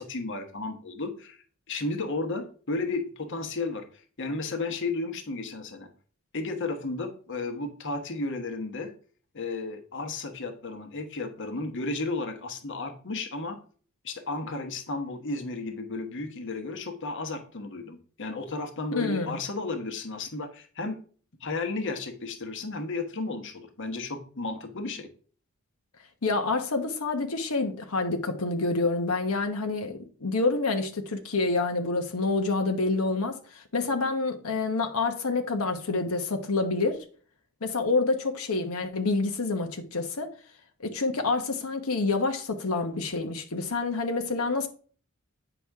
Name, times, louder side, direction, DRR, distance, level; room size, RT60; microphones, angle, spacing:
voice 1, 0.0-1.4 1.7-3.8 4.2-5.9 6.3-8.9 9.3-13.6 14.0-21.0 21.4-25.1, left 3 dB, 60° left, 1.2 m, -33 dB
voice 2, 18.9-19.4 26.2-37.0 37.6-40.3 40.8-44.7, left 3 dB, 85° left, 1.0 m, -27 dB
9.0 x 6.0 x 3.5 m
head